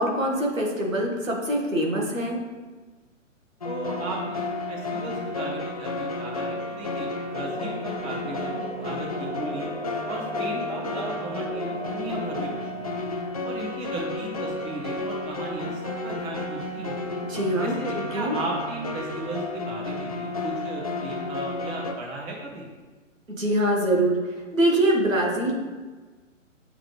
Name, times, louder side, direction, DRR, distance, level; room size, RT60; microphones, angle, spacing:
voice 1, 0.0-2.4 17.2-17.8 18.1-18.3 23.3-24.2 24.5-25.5, right 1 dB, 80° right, -1 dB, 1.7 m, -23 dB
sound 1, 3.6-21.9, left 2 dB, 30° left, 0.4 m, -32 dB
voice 2, 3.6-9.7 10.1-13.0 13.4-17.0 17.6-22.7, right 2 dB, 15° right, -3 dB, 1.1 m, -36 dB
sound 2, 7.3-12.5, right 2 dB, 55° right, 1.3 m, -36 dB
8.0 x 3.7 x 3.2 m, 1.3 s
figure-of-eight pair, 130°, 39 cm